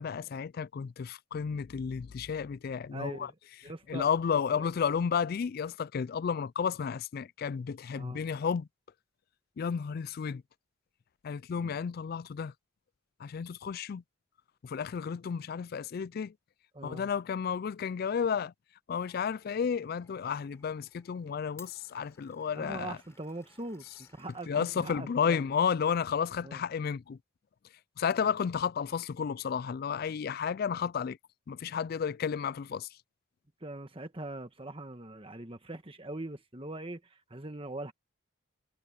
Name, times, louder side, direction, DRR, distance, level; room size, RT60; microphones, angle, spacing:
voice 1, 0.0-3.3 3.9-8.7 9.6-10.4 11.2-12.5 13.2-14.0 14.6-16.3 16.8-18.5 18.9-23.0 24.5-27.2 28.0-31.2 31.5-32.9, left 6 dB, 45° left, 0.3 m, -32 dB
voice 2, 2.9-3.4 3.6-4.1 4.5-4.7 7.9-8.2 11.5-11.8 16.7-17.1 22.5-25.5 26.4-26.6 28.2-28.3 33.6-37.9, right 2 dB, 25° right, 1.5 m, -42 dB
Glass, 19.0-25.2, left 5 dB, 15° left, 3.8 m, -61 dB
head